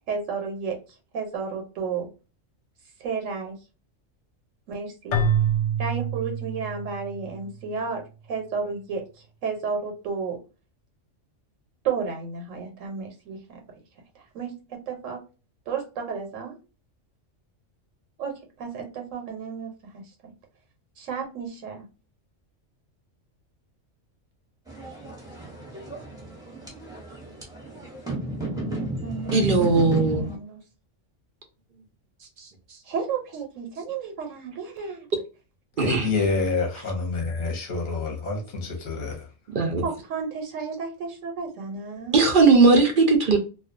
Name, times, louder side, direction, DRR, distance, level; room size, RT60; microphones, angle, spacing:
voice 1, 0.1-0.8 1.1-2.1 3.0-3.6 4.7-5.2 5.8-8.0 8.3-10.4 11.8-13.6 14.1-15.2 15.7-16.6 18.2-20.3 21.0-21.8 28.9-30.6 32.9-35.1 39.8-42.2, right 5 dB, 85° right, 1.1 m, -32 dB
Keyboard (musical), 5.1-7.4, right 4 dB, 70° left, 0.8 m, -26 dB
sound 1, 24.7-30.4, right 2 dB, 5° right, 0.6 m, -33 dB
voice 2, 29.3-30.2 35.8-36.1 39.5-39.8 42.1-43.4, right 3 dB, 60° right, 0.6 m, -18 dB
voice 3, 35.8-39.2, left 3 dB, 45° left, 0.8 m, -27 dB
2.3 x 2.3 x 2.4 m
omnidirectional pair, 1.3 m